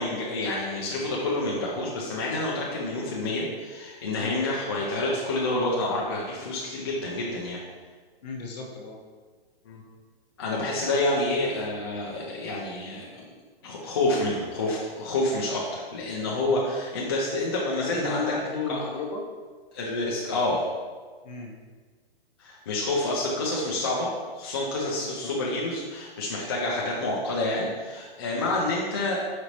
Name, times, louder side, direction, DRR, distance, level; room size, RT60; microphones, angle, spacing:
voice 1, 0.0-7.6 9.7-9.8 10.4-13.3 13.6-18.2 18.7-18.8 19.7-20.7 22.4-24.1 24.3-29.2, left 2 dB, 25° left, -5 dB, 0.3 m, -28 dB
voice 2, 8.2-9.0 10.9-11.0 17.8-19.2 21.2-21.6 25.0-25.3 28.3-28.5, left 3 dB, 45° left, 0 dB, 0.7 m, -34 dB
5.1 x 2.6 x 3.0 m, 1.5 s
hypercardioid pair, 155°, 30 cm